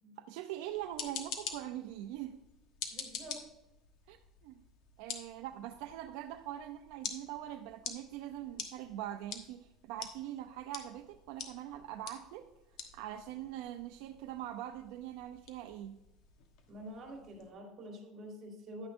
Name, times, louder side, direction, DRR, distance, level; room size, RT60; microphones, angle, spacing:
voice 1, 0.2-2.4 4.1-4.6 5.0-12.5 12.8-15.9, right 12 dB, 80° right, 6 dB, 0.5 m, -43 dB
sound 1, 0.7-17.5, left 7 dB, 60° left, 1.2 m, -48 dB
voice 2, 2.9-3.5 16.7-18.9, equal, 35° right, 1 dB, 3.5 m, -47 dB
10.5 x 9.6 x 2.6 m, 0.91 s
cardioid pair, 140°, 0 cm